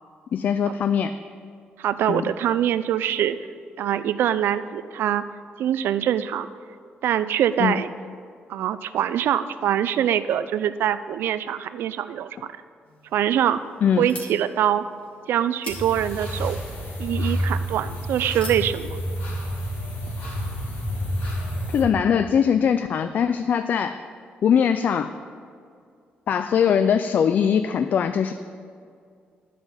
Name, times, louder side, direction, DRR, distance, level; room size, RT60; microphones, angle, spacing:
voice 1, 0.3-1.1 2.1-2.3 7.6-7.8 13.8-14.1 21.7-24.0 24.4-25.1 26.3-28.3, left 7 dB, 50° left, 10 dB, 0.3 m, -21 dB
voice 2, 1.8-3.4 3.8-5.2 5.6-6.5 7.0-7.9 8.5-12.3 13.1-13.6 14.0-14.8 15.3-16.6 17.0-18.9, right 10 dB, 80° right, 13 dB, 0.4 m, -23 dB
sound 1, 12.8-18.7, left 1 dB, 35° left, 2.1 m, -44 dB
sound 2, 15.7-21.8, equal, 70° left, 2.6 m, -29 dB
10.5 x 5.8 x 7.0 m, 2.3 s
cardioid pair, 140°, 4 cm